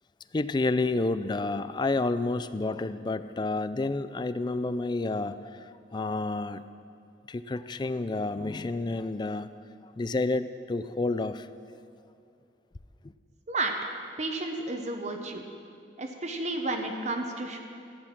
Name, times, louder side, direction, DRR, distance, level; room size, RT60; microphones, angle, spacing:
voice 1, 0.3-5.5 5.9-6.6 7.3-9.5 10.0-11.4, left 2 dB, 25° left, 13 dB, 0.4 m, -29 dB
voice 2, 14.2-15.4 16.0-17.6, right 2 dB, 40° right, 3 dB, 1.0 m, -32 dB
14.5 x 10.0 x 6.0 m, 2.4 s
head